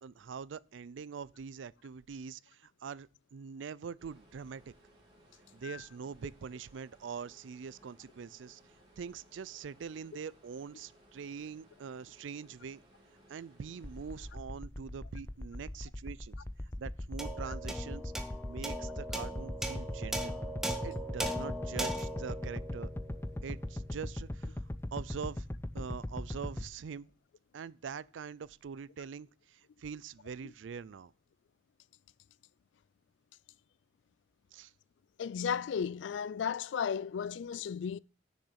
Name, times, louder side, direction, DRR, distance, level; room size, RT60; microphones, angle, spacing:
voice 1, 0.0-4.7 5.5-8.6 9.0-12.8 13.3-16.4 16.8-20.4 20.8-22.9 23.4-24.6 24.9-25.5 25.7-27.1 27.5-31.1 34.5-34.7, right 6 dB, 90° right, 0.4 m, -44 dB
sound 1, 4.0-14.3, right 1 dB, 30° right, 3.0 m, -63 dB
sound 2, 13.8-26.6, left 1 dB, 15° left, 0.5 m, -39 dB
sound 3, 17.2-23.8, right 1 dB, ahead, 1.0 m, -39 dB
voice 2, 35.2-38.0, left 7 dB, 80° left, 0.3 m, -34 dB
6.8 x 6.6 x 7.3 m
head